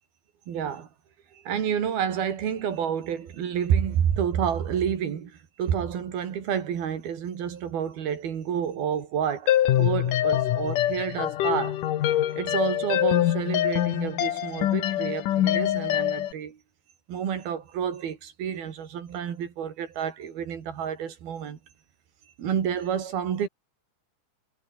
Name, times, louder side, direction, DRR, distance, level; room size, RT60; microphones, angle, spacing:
voice 1, 0.5-0.9 1.3-11.8 12.3-16.6 17.1-21.6 22.4-23.5, right 8 dB, 60° right, 4.4 m, -29 dB
sound 1, 9.5-16.3, left 12 dB, 60° left, 2.5 m, -24 dB
omnidirectional pair, 5.0 m